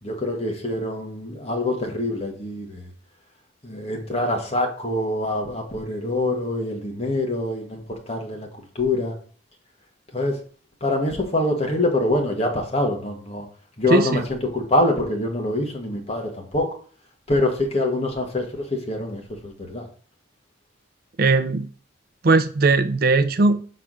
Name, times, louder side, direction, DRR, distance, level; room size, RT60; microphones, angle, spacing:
voice 1, 0.0-2.9 3.6-8.5 8.7-9.1 10.1-10.4 10.8-13.4 13.8-16.7 17.3-19.9, left 1 dB, 35° left, 1 dB, 1.7 m, -25 dB
voice 2, 13.9-14.2 21.2-21.7 22.2-23.6, right 3 dB, 50° right, 11 dB, 0.5 m, -18 dB
5.6 x 4.9 x 6.3 m, 0.43 s
head